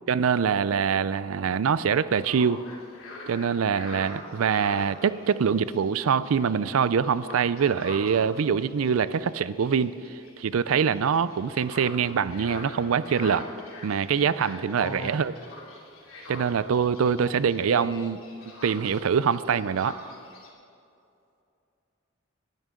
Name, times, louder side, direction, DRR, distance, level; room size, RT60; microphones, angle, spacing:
voice 1, 0.1-2.6 3.3-9.9 10.4-13.5 13.8-15.3 16.3-18.2 18.6-20.0, right 6 dB, 85° right, 16 dB, 0.4 m, -24 dB
sound 1, 2.1-20.5, left 2 dB, 80° left, 2.9 m, -45 dB
voice 2, 14.8-15.4 17.2-17.4 17.7-18.1, left 2 dB, 15° left, 12 dB, 0.4 m, -39 dB
20.0 x 11.0 x 3.8 m, 2.5 s
head